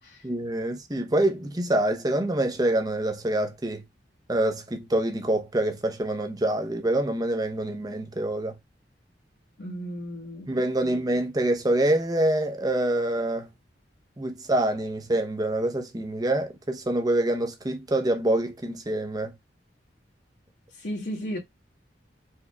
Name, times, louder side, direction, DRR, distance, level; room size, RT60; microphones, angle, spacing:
voice 1, 0.2-3.8 4.3-8.5 10.5-13.5 14.2-19.3, right 1 dB, 20° right, 0.7 m, -26 dB
voice 2, 9.6-10.5 10.8-11.0 20.7-21.4, equal, 85° left, 1.9 m, -35 dB
4.5 x 3.4 x 2.2 m
head